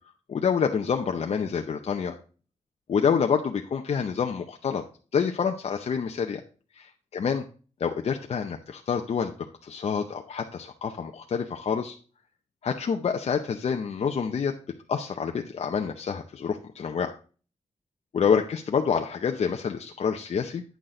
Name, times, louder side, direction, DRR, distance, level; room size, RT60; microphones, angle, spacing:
voice 1, 0.3-2.1 2.9-4.8 5.1-6.4 7.1-7.4 7.8-9.3 9.6-12.0 12.6-14.5 14.9-17.1 18.1-20.6, left 6 dB, 60° left, 3 dB, 0.7 m, -27 dB
9.3 x 6.2 x 3.8 m, 0.38 s
wide cardioid pair, 150°, 12 cm